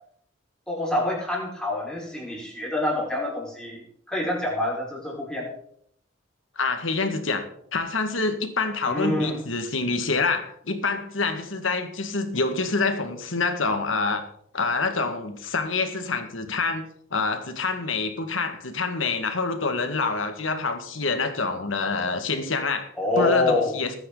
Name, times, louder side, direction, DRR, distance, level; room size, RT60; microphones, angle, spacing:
voice 1, 0.7-5.5 8.8-9.4 23.0-23.7, left 2 dB, 5° left, 5.8 m, -26 dB
voice 2, 6.6-7.4 7.7-14.2 14.5-22.9 23.2-24.0, left 3 dB, 85° left, 2.2 m, -26 dB
20.5 x 9.6 x 4.1 m
head